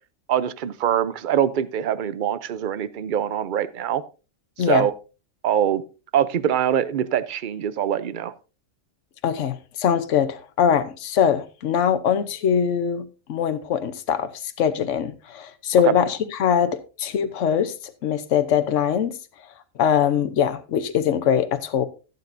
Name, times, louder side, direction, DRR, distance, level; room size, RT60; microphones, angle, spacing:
voice 1, 0.3-4.0 4.7-4.9 5.4-5.8 6.1-8.3 15.8-16.0, right 10 dB, 50° right, 0.6 m, -23 dB
voice 2, 9.2-17.7 18.0-19.1 19.8-21.8, left 8 dB, 65° left, 1.2 m, -22 dB
16.0 x 8.3 x 2.6 m
omnidirectional pair, 1.4 m